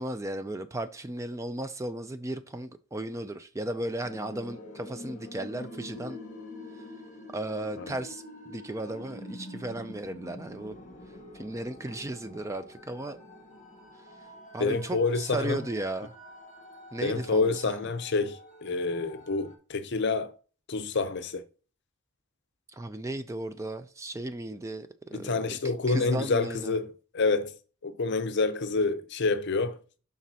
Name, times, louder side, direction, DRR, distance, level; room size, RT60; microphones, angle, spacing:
voice 1, 0.0-6.2 7.3-10.7 11.3-13.2 14.5-16.1 16.9-17.9 22.7-25.6 25.9-26.8, right 1 dB, 15° right, 0.4 m, -35 dB
sound 1, 4.0-19.6, left 1 dB, 35° left, 1.4 m, -46 dB
voice 2, 14.6-15.6 17.0-20.3 20.7-21.4 25.1-27.5 27.8-29.8, left 3 dB, 50° left, 0.6 m, -28 dB
12.0 x 4.1 x 2.8 m
head